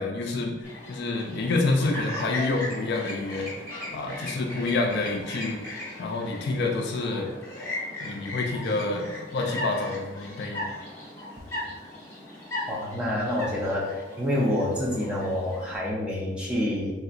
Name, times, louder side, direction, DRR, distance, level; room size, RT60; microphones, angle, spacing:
voice 1, 0.0-3.5 3.9-5.6 6.0-7.3 8.0-10.7, left 3 dB, 50° left, 2 dB, 0.3 m, -28 dB
Chirp tweet, 0.6-15.8, left 1 dB, 10° left, 0.9 m, -38 dB
voice 2, 12.7-16.9, left 1 dB, 5° right, -5 dB, 0.5 m, -27 dB
3.4 x 2.8 x 2.4 m, 1.2 s
head